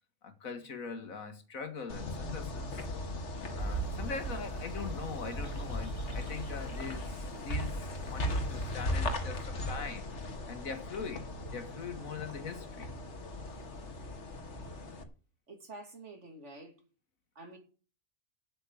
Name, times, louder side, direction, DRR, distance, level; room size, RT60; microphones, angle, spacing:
voice 1, 0.2-2.7 3.5-10.1 10.5-12.9, left 5 dB, 85° left, 2.1 m, -42 dB
sound 1, 1.9-15.0, left 1 dB, 60° left, 1.7 m, -38 dB
sound 2, 3.6-8.8, right 4 dB, 25° right, 1.2 m, -43 dB
voice 2, 15.5-16.7 17.3-17.6, right 2 dB, 60° right, 2.8 m, -48 dB
8.3 x 7.7 x 8.3 m
omnidirectional pair, 1.4 m